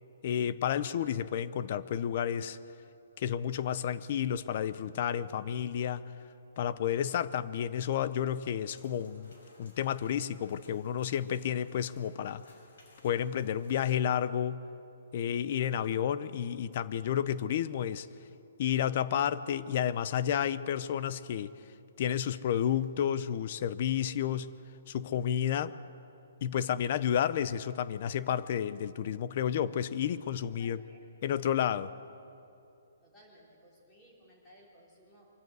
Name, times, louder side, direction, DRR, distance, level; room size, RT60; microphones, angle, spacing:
voice 1, 0.2-2.6 3.2-6.1 6.6-12.4 13.0-14.6 15.1-18.1 18.6-21.5 22.0-24.5 24.9-25.7 26.4-30.8 31.2-31.9, left 9 dB, 30° left, 16 dB, 0.5 m, -31 dB
sound 1, 8.7-13.9, left 1 dB, 55° left, 5.8 m, -60 dB
voice 2, 30.6-31.4 33.0-35.3, equal, 10° left, -5 dB, 3.6 m, -60 dB
24.0 x 14.0 x 8.1 m, 2.7 s
hypercardioid pair, 180°, 0 cm